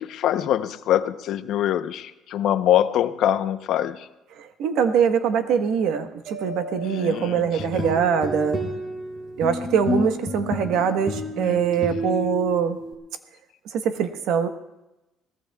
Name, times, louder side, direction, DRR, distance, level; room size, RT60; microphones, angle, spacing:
voice 1, 0.0-4.1 6.8-7.9 11.4-12.2, left 11 dB, 65° left, 10 dB, 0.7 m, -24 dB
voice 2, 4.6-8.6 9.4-12.8 13.8-14.5, right 7 dB, 70° right, 7 dB, 1.2 m, -23 dB
Mallet percussion, 6.3-8.3, left 1 dB, 50° right, 4.0 m, -39 dB
sound 1, 7.4-12.9, equal, 35° right, 2.9 m, -30 dB
22.5 x 18.5 x 2.3 m, 0.96 s
cardioid pair, 135°, 0 cm